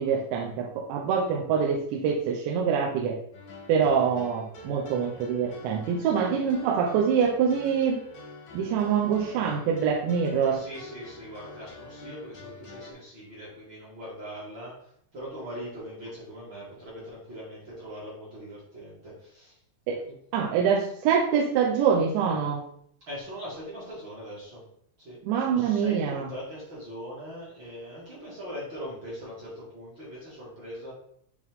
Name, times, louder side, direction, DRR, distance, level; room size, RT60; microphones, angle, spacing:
voice 1, 0.0-3.2 3.7-8.0 8.5-10.6 19.9-20.0 20.3-22.6 25.2-26.3, right 7 dB, 85° right, -1 dB, 2.9 m, -25 dB
sound 1, 3.3-12.9, left 2 dB, 85° left, 1.5 m, -46 dB
voice 2, 6.0-6.5 8.5-9.7 10.5-19.6 20.0-20.2 23.1-24.6 25.0-30.9, equal, 60° right, -7 dB, 1.2 m, -41 dB
8.5 x 3.1 x 3.5 m, 0.69 s
omnidirectional pair, 5.0 m